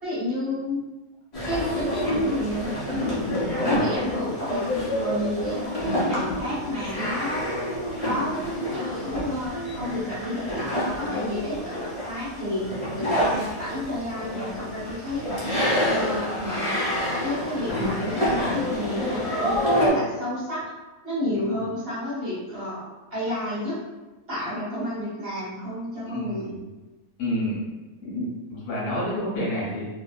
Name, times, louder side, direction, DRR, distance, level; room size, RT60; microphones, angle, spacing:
voice 1, 0.0-0.8 1.5-3.2 3.5-4.7 5.0-7.5 8.0-12.6 12.9-15.2 15.8-16.8 17.2-20.6 21.0-23.8 24.3-26.5, left 1 dB, 40° right, -10 dB, 1.2 m, -30 dB
sound 1, 1.3-19.9, equal, 25° left, 0.8 m, -28 dB
voice 2, 26.0-26.6 27.2-27.6 28.0-29.9, left 1 dB, 70° left, -6 dB, 1.4 m, -29 dB
2.8 x 2.7 x 2.3 m, 1.2 s
omnidirectional pair, 1.7 m